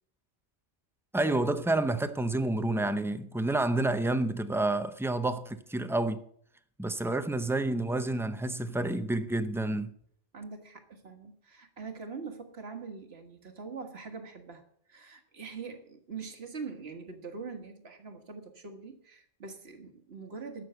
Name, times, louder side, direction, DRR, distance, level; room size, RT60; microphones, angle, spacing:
voice 1, 1.1-6.2 6.8-9.9, right 2 dB, 5° right, 0.4 m, -29 dB
voice 2, 10.3-14.6 14.9-20.6, right 5 dB, 65° right, 1.7 m, -43 dB
12.5 x 6.3 x 7.8 m
omnidirectional pair, 1.2 m